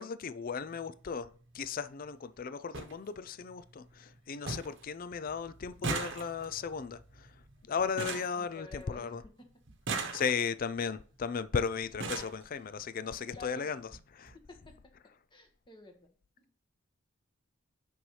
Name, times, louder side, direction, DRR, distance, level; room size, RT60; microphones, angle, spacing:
voice 1, 0.0-7.3 7.7-9.2 10.1-13.8 14.1-14.3, left 6 dB, 45° left, 0.4 m, -36 dB
sound 1, 0.6-0.8 2.0-2.1 2.4-2.5 2.7-2.9 3.4-3.9 4.1-4.2 4.5-4.8 5.1-9.1 9.7-10.6 11.4-11.5 11.8-12.4 13.4-13.5 13.8-14.0 14.3-14.4, right 3 dB, 60° right, 1.0 m, -39 dB
voice 2, 8.3-9.3 13.3-13.7 14.5-14.7 15.3-16.1 16.4-16.5, left 3 dB, 25° left, 1.6 m, -51 dB
9.0 x 5.5 x 3.2 m
head